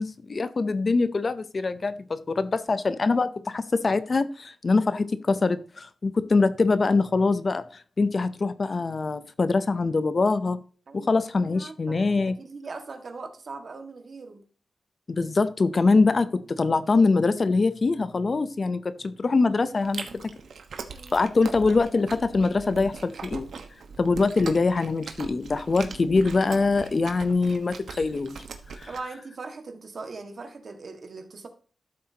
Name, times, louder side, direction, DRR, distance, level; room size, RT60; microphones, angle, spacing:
voice 1, 0.0-10.6 10.9-12.4 15.1-20.3 21.1-23.5 24.0-28.4 28.7-28.9, left 3 dB, 40° left, 13 dB, 0.6 m, -24 dB
voice 2, 10.9-14.4 19.3-19.7 20.1-20.2 20.9-21.3 28.9-31.5, right 3 dB, 50° right, 5 dB, 1.7 m, -41 dB
Chewing mastication, 19.8-29.0, right 5 dB, 80° right, 1.2 m, -41 dB
13.0 x 7.7 x 2.8 m, 0.41 s
wide cardioid pair, 115°, 0 cm